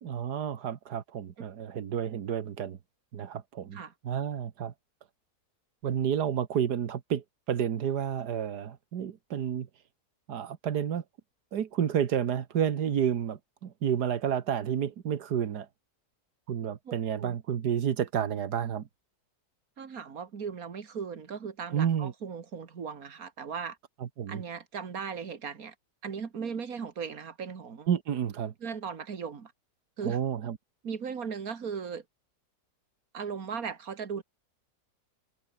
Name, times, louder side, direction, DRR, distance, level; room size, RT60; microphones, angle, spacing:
voice 1, 0.0-2.8 3.1-4.7 5.8-9.7 10.3-11.0 11.5-15.7 16.5-18.9 21.7-22.1 24.0-24.4 27.9-28.5 30.0-30.6, right 8 dB, 90° right, 1.9 m, -30 dB
voice 2, 19.8-23.8 24.3-25.7 26.0-27.9 28.6-29.5 30.0-30.2 30.8-32.0 33.1-34.2, right 6 dB, 65° right, 2.4 m, -37 dB
omnidirectional pair, 1.7 m